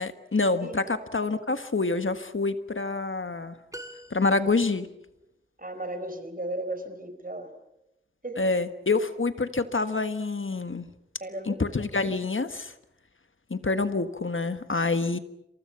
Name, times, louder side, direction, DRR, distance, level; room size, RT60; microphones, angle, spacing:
voice 1, 0.0-3.6 4.1-4.9 8.4-10.9 11.5-12.7 13.5-15.2, left 3 dB, 80° left, 10 dB, 1.6 m, -27 dB
sound 1, 3.7-4.8, right 1 dB, 15° right, 2.4 m, -44 dB
voice 2, 5.6-7.5 8.2-8.4 11.2-11.6, right 1 dB, 45° right, 8 dB, 4.7 m, -35 dB
28.0 x 27.0 x 5.9 m, 0.85 s
wide cardioid pair, 50°, 20 cm